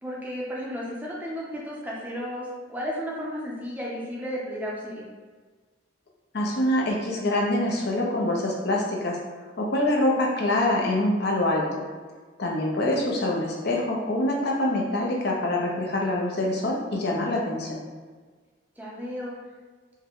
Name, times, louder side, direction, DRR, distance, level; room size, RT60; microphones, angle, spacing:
voice 1, 0.0-5.1 12.9-13.4 18.8-19.4, equal, 10° right, -5 dB, 0.6 m, -34 dB
voice 2, 6.3-9.2 9.6-11.8 12.4-17.8, left 1 dB, 55° left, -1 dB, 0.6 m, -25 dB
4.6 x 2.2 x 3.6 m, 1.4 s
head